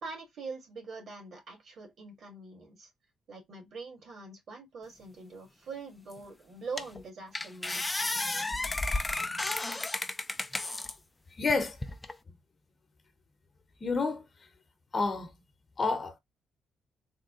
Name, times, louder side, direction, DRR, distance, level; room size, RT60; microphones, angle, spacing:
voice 1, 0.0-2.9 3.3-7.8, right 4 dB, 60° right, 1.8 m, -43 dB
sound 1, 6.1-6.2 6.8-7.0 7.3-10.9 11.5-12.1, left 2 dB, 20° left, 0.4 m, -33 dB
voice 2, 11.4-11.8 13.8-14.2 14.9-15.3 15.8-16.2, left 3 dB, 35° left, 0.9 m, -29 dB
3.7 x 2.1 x 3.7 m
cardioid pair, 90°, 0 cm